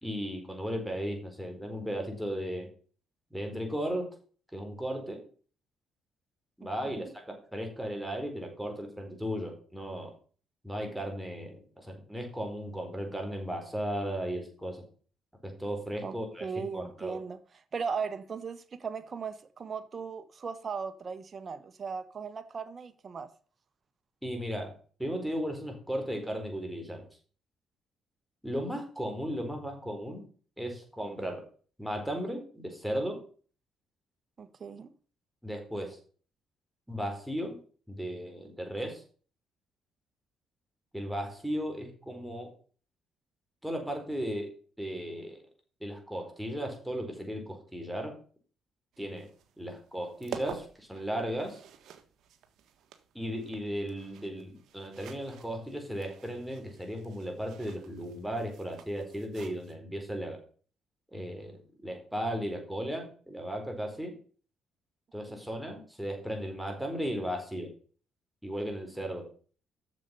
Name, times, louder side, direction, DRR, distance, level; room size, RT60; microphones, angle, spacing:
voice 1, 0.0-2.7 3.3-4.1 4.5-5.2 6.6-10.1 10.6-14.8 15.4-17.2 24.2-24.7 25.0-27.1 28.4-30.2 30.6-31.4 31.8-33.2 35.4-36.0 36.9-37.6 37.9-39.0 40.9-42.5 43.6-44.5 44.8-45.4 45.8-48.1 49.0-49.3 49.6-51.6 53.1-60.4 61.1-64.1 65.1-67.7 68.4-69.3, equal, 5° right, 4.3 m, -36 dB
voice 2, 16.4-17.4 17.7-23.3 34.4-34.9, right 5 dB, 40° right, 1.2 m, -37 dB
sound 1, 48.9-59.7, right 8 dB, 70° right, 1.6 m, -49 dB
8.2 x 6.8 x 6.9 m
cardioid pair, 80°, 0 cm